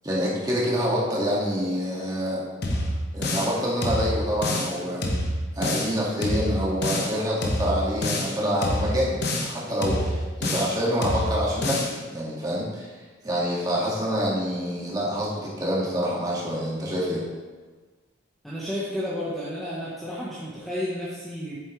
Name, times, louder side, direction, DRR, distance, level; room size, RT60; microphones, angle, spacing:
voice 1, 0.0-2.4 3.1-5.1 5.6-12.9 13.2-17.2, equal, 20° right, -6 dB, 1.9 m, -26 dB
sound 1, 2.6-3.5 3.8-4.7 5.0-5.9 6.2-7.1 7.4-8.3 8.6-9.5 9.8-10.7 11.0-11.9, left 1 dB, 55° left, 1.1 m, -27 dB
voice 2, 18.4-21.6, left 1 dB, ahead, -9 dB, 1.2 m, -31 dB
8.3 x 7.2 x 3.2 m, 1.3 s
head